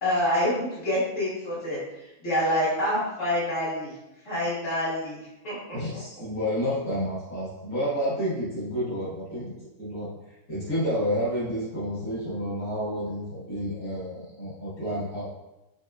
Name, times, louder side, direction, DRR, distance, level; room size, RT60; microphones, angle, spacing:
voice 1, 0.0-1.8 2.2-3.9 4.3-5.8, left 1 dB, 55° left, -11 dB, 2.0 m, -27 dB
voice 2, 5.7-9.5 9.8-10.1 10.5-15.4, equal, 80° left, -11 dB, 1.9 m, -30 dB
6.5 x 2.4 x 2.3 m, 0.97 s
omnidirectional pair, 1.5 m